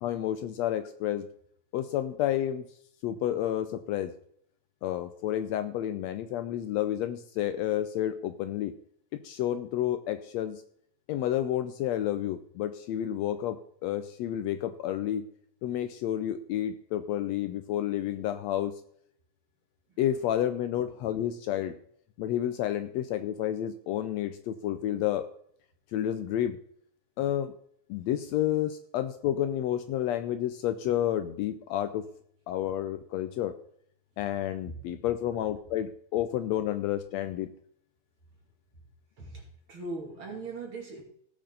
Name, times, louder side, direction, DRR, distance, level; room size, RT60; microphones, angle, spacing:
voice 1, 0.0-1.3 1.7-2.6 3.0-4.1 4.8-8.7 9.2-10.6 11.1-15.3 15.6-18.7 20.0-21.8 22.2-25.2 25.9-26.6 27.2-27.5 27.9-32.0 32.5-33.5 34.2-37.5, left 11 dB, 80° left, 10 dB, 1.7 m, -30 dB
voice 2, 39.2-41.0, right 3 dB, 45° right, -1 dB, 3.1 m, -40 dB
17.0 x 6.7 x 3.9 m, 0.65 s
omnidirectional pair, 3.4 m